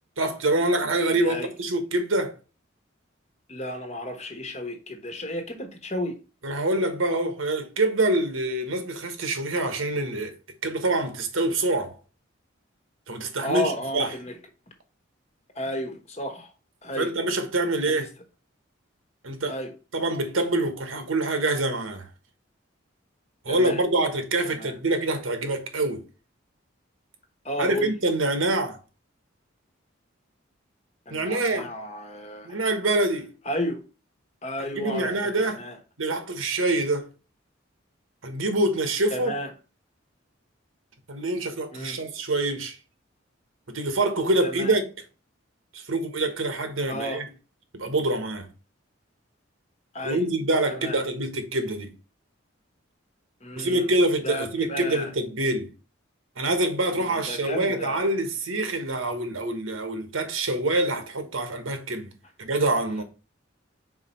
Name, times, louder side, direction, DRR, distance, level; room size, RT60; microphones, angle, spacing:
voice 1, 0.2-2.3 6.4-10.3 10.6-12.0 13.1-14.1 17.0-18.1 19.2-19.6 19.9-22.0 23.4-26.0 27.6-28.8 31.1-31.7 32.4-33.3 34.7-35.6 36.0-37.1 38.2-39.3 41.1-42.8 43.7-44.8 45.7-47.2 47.7-48.5 50.0-51.9 53.6-55.7 56.4-62.1 62.4-63.0, right 2 dB, 85° right, 1.3 m, -25 dB
voice 2, 1.2-1.5 3.5-6.2 13.4-14.4 15.5-16.5 16.8-17.1 17.9-18.1 19.5-19.7 23.5-23.8 24.4-24.7 27.4-27.9 31.1-32.6 33.4-33.8 34.4-35.8 39.1-39.5 41.7-42.0 44.4-44.8 46.9-47.2 49.9-50.2 50.7-51.0 53.4-53.9 54.2-55.1 56.9-58.1, equal, 35° left, 1.2 m, -33 dB
4.9 x 4.4 x 4.4 m
head